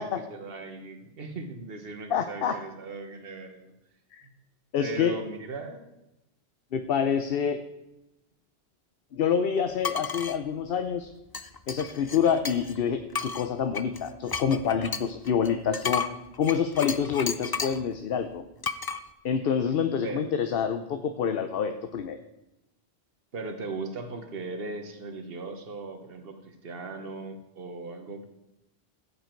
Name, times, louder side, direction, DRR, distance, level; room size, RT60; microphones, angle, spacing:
voice 1, 0.3-3.7 4.8-5.9 19.4-19.5 20.0-20.2 23.3-28.3, right 3 dB, 60° right, 7 dB, 1.4 m, -38 dB
voice 2, 2.1-2.6 4.1-4.2 4.7-5.1 6.7-7.6 9.1-11.1 11.7-16.1 16.4-18.4 19.2-22.2, left 7 dB, 60° left, 8 dB, 0.9 m, -27 dB
sound 1, 9.8-10.4 11.3-12.8 13.1-17.9 18.6-19.0, left 5 dB, 35° left, 0.3 m, -33 dB
15.0 x 8.4 x 4.5 m, 0.93 s
omnidirectional pair, 1.1 m